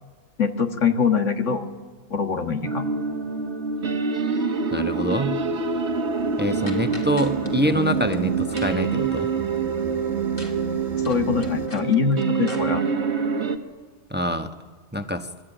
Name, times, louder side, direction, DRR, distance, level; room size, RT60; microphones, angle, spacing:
voice 1, 0.4-1.6 2.1-2.9 11.0-12.8, left 6 dB, 85° left, 6 dB, 2.0 m, -23 dB
sound 1, 2.6-13.6, right 5 dB, 65° right, 1.8 m, -26 dB
sound 2, 4.6-11.7, right 2 dB, 40° right, 2.0 m, -41 dB
voice 2, 4.7-5.4 6.4-9.3 14.1-14.5 14.9-15.3, equal, 10° right, 8 dB, 0.9 m, -25 dB
sound 3, 6.7-7.5 7.9-8.2 8.6-8.9 10.4-10.6 10.8-12.6, left 1 dB, 35° left, 2.3 m, -41 dB
27.0 x 22.0 x 9.0 m, 1.4 s
omnidirectional pair, 1.2 m